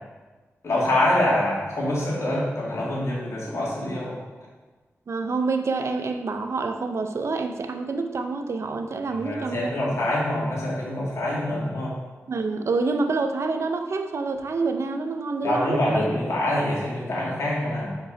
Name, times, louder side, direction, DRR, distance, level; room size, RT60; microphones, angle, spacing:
voice 1, 0.6-4.2 9.1-11.9 15.4-17.9, left 1 dB, 70° left, -5 dB, 2.1 m, -25 dB
voice 2, 5.1-9.7 12.3-16.0, right 3 dB, 65° right, 6 dB, 0.6 m, -27 dB
5.5 x 4.6 x 5.1 m, 1.3 s
wide cardioid pair, 115°, 5 cm